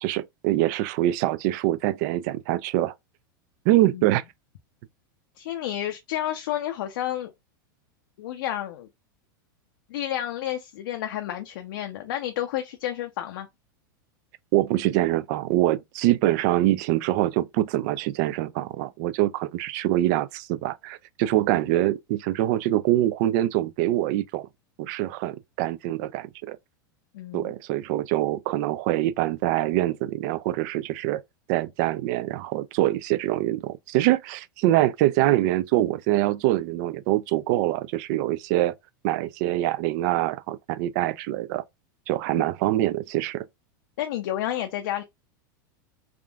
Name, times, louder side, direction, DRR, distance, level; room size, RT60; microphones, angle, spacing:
voice 1, 0.0-2.9 3.7-4.2 14.5-24.5 24.8-26.6 27.3-31.2 31.5-38.7 39.0-41.6 42.1-43.5, right 15 dB, 55° right, 0.4 m, -24 dB
voice 2, 5.4-7.3 8.2-8.9 9.9-13.5 27.1-27.5 42.3-42.5 44.0-45.0, left 12 dB, 70° left, 0.5 m, -30 dB
3.5 x 2.4 x 2.3 m
hypercardioid pair, 110°, 11 cm